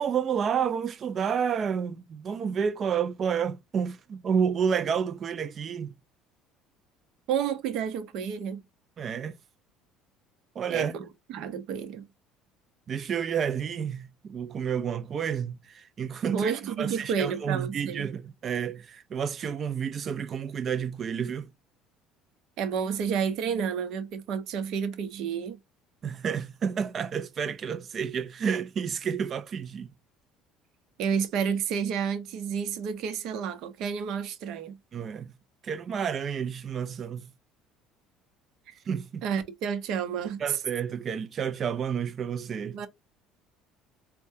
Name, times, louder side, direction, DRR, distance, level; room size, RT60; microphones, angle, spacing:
voice 1, 0.0-5.9 9.0-9.3 10.6-10.9 12.9-21.5 26.0-29.9 34.9-35.3 35.6-37.2 38.9-39.2 40.4-42.8, right 7 dB, 40° right, 0.4 m, -30 dB
voice 2, 7.3-8.6 10.7-10.9 11.3-12.1 16.3-18.1 22.6-25.6 31.0-34.8 38.7-38.8 39.2-40.6 42.7-42.9, right 7 dB, 65° right, 0.8 m, -30 dB
4.5 x 2.2 x 2.6 m
supercardioid pair, 95°, 0 cm